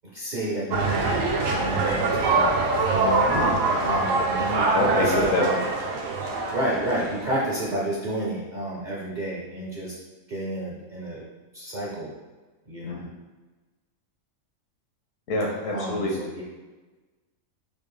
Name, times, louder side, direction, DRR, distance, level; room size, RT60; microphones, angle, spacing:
voice 1, 0.1-1.3 1.6-2.6 2.9-5.6 6.5-10.0 10.3-11.2 11.5-12.1 12.7-13.0 15.7-16.4, right 1 dB, 45° right, -6 dB, 0.6 m, -31 dB
sound 1, 0.7-7.5, right 3 dB, 70° right, 1.0 m, -24 dB
voice 2, 3.2-3.5 4.7-5.4 12.8-13.0 15.3-16.1, left 2 dB, 70° left, -1 dB, 1.1 m, -26 dB
4.4 x 2.6 x 3.1 m, 1.2 s
omnidirectional pair, 1.5 m